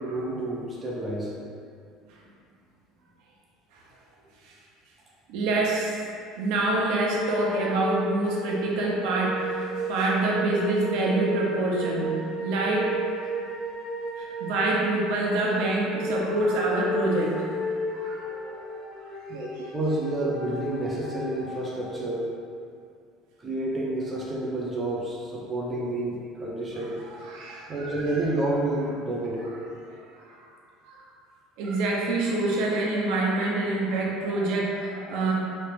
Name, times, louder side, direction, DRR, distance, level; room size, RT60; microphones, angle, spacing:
voice 1, 0.0-1.3 19.3-22.2 23.4-27.0 27.7-29.5, right 1 dB, 20° right, -5 dB, 0.4 m, -29 dB
voice 2, 5.3-5.9 6.3-12.1 12.4-12.9 14.2-17.5 17.9-18.7 27.2-27.9 30.3-30.4 30.9-31.0 31.6-35.3, right 2 dB, 70° right, -3 dB, 0.6 m, -26 dB
sound 1, 7.2-22.3, equal, 60° left, 1.3 m, -34 dB
3.0 x 2.4 x 3.3 m, 2.3 s
cardioid pair, 150°, 0 cm